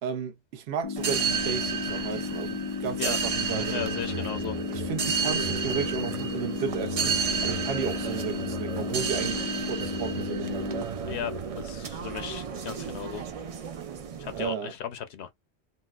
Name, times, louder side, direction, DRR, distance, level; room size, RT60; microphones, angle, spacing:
voice 1, 0.0-3.9 4.7-7.2 7.4-10.5 14.3-14.7, right 7 dB, 70° right, 0.9 m, -33 dB
sound 1, 0.8-10.8, left 5 dB, 40° left, 0.6 m, -34 dB
sound 2, 1.0-14.4, right 6 dB, 55° right, 0.4 m, -32 dB
voice 2, 3.7-4.6 11.1-13.5 14.2-15.3, left 9 dB, 80° left, 0.8 m, -36 dB
4.0 x 2.1 x 2.3 m
omnidirectional pair, 1.1 m